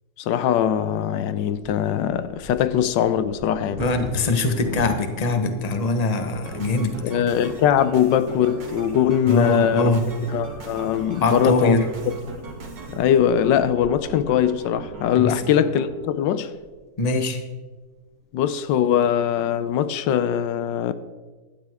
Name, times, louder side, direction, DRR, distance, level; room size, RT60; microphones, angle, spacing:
voice 1, 0.2-3.8 7.0-10.0 10.3-11.9 12.9-16.5 18.3-20.9, left 9 dB, 85° left, 1.3 m, -21 dB
Bird vocalization bird call bird song / Wind / Thunder, 1.3-17.2 17.9-18.0 18.3-18.7 19.2-19.7, equal, 10° right, 2.2 m, -41 dB
voice 2, 3.8-7.0 9.3-10.0 11.2-11.9 15.2-15.4 17.0-17.4, left 2 dB, 30° left, 0.9 m, -22 dB
sound 1, 6.4-15.9, right 3 dB, 80° right, 2.5 m, -38 dB
15.5 x 12.0 x 3.5 m
omnidirectional pair, 1.9 m